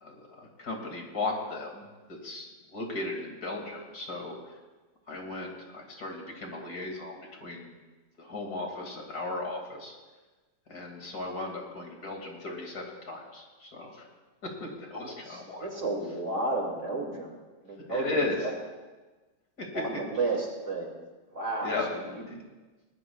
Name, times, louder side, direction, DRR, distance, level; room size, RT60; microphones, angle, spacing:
voice 1, 0.0-1.8 2.1-4.4 5.1-7.7 8.2-9.9 10.7-14.1 14.4-15.7 17.9-18.4 19.6-19.8 21.6-21.9 22.3-22.4, left 2 dB, 60° left, 1 dB, 2.9 m, -36 dB
voice 2, 15.2-17.3 17.6-18.5 19.7-20.9 21.3-22.3, right 2 dB, 45° right, 0 dB, 2.7 m, -32 dB
20.5 x 19.5 x 2.4 m, 1.2 s
omnidirectional pair, 1.9 m